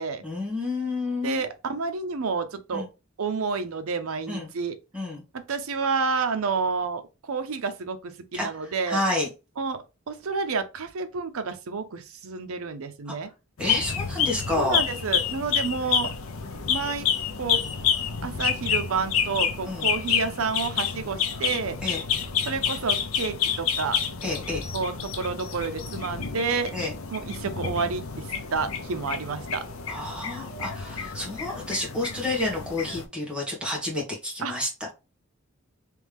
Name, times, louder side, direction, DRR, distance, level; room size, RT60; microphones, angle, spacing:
voice 1, 0.2-1.4 2.7-2.9 4.3-4.5 4.9-5.2 8.3-8.5 8.9-9.3 13.6-14.8 19.6-19.9 21.8-22.0 24.2-24.7 26.7-26.9 29.9-34.9, left 2 dB, 5° right, 1.5 m, -29 dB
voice 2, 1.2-2.9 3.2-4.8 5.3-9.0 9.6-13.3 14.6-16.1 16.7-17.1 17.4-17.6 18.2-21.8 22.5-24.0 24.7-26.7 27.1-29.6 34.4-34.5, right 4 dB, 80° right, 0.6 m, -29 dB
sound 1, 13.6-33.0, left 7 dB, 75° left, 0.6 m, -29 dB
3.4 x 3.1 x 3.4 m
head